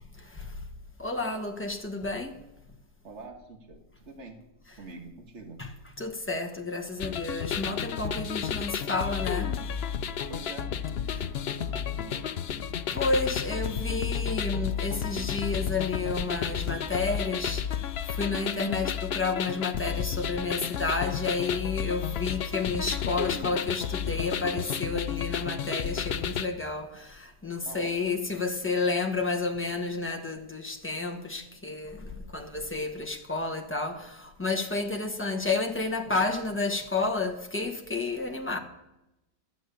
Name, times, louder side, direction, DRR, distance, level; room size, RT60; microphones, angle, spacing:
voice 1, 1.0-2.3 5.6-5.7 6.0-9.5 12.9-17.6 18.2-32.0 32.3-38.6, left 3 dB, 10° left, 0.9 m, -31 dB
voice 2, 3.0-4.4 4.8-5.6 10.3-10.7 11.2-12.4 27.6-28.0 38.3-38.4, right 3 dB, 40° right, 1.9 m, -45 dB
sound 1, 7.0-26.5, left 8 dB, 90° left, 0.5 m, -32 dB
12.0 x 9.7 x 6.9 m
omnidirectional pair, 1.9 m